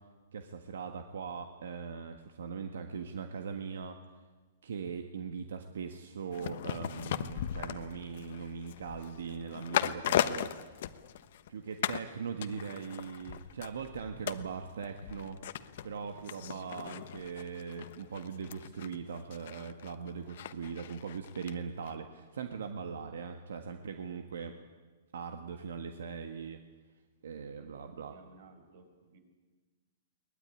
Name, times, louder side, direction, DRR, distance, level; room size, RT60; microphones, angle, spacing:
voice 1, 0.3-4.0 4.6-10.5 11.5-15.4 15.8-24.6 25.1-26.6 27.2-28.2, right 6 dB, 85° right, 6 dB, 1.7 m, -40 dB
sound 1, 6.3-11.5 11.8-12.1 12.4-21.5 21.9-22.0, left 11 dB, 55° left, 1.1 m, -37 dB
voice 2, 27.5-29.2, right 3 dB, 55° right, 7 dB, 5.1 m, -58 dB
22.5 x 20.0 x 9.9 m, 1.4 s
hypercardioid pair, 165°, 0 cm